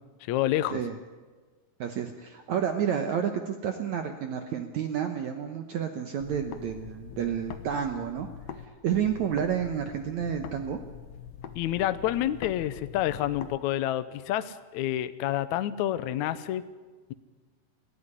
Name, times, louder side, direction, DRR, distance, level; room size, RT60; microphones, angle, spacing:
voice 1, 0.2-0.8 11.6-16.6, left 13 dB, 85° left, 13 dB, 1.6 m, -28 dB
voice 2, 1.8-8.3 8.8-10.8, right 8 dB, 70° right, 6 dB, 1.9 m, -30 dB
sound 1, 6.2-8.7 8.9-13.6, left 8 dB, 70° left, 1.6 m, -43 dB
30.0 x 10.5 x 9.8 m, 1.4 s
omnidirectional pair, 4.5 m